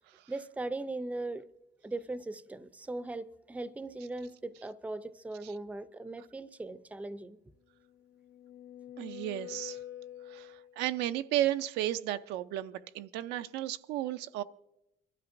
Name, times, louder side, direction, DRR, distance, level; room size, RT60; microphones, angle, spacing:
voice 1, 0.3-1.5 1.8-7.4, right 2 dB, 10° right, 0.5 m, -39 dB
sound 1, 7.9-10.9, left 11 dB, 75° left, 0.6 m, -46 dB
voice 2, 9.0-9.8 10.3-14.4, right 13 dB, 90° right, 0.5 m, -34 dB
26.5 x 12.5 x 2.6 m
cardioid pair, 110°, 17 cm